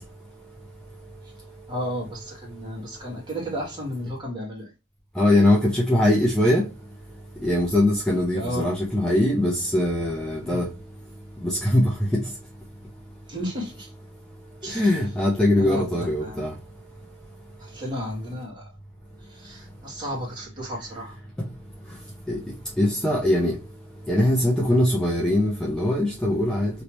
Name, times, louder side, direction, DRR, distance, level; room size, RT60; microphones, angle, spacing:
voice 1, 1.7-4.7 8.3-8.7 10.4-10.6 13.3-13.9 14.6-15.0 15.6-16.4 17.6-18.7 19.3-21.2, equal, 20° right, 1.7 m, -33 dB
voice 2, 5.2-6.6 7.4-10.7 11.4-12.2 14.7-16.5 22.3-22.4 22.8-23.5 24.1-26.7, left 1 dB, 5° left, 0.6 m, -21 dB
3.1 x 2.8 x 2.9 m
head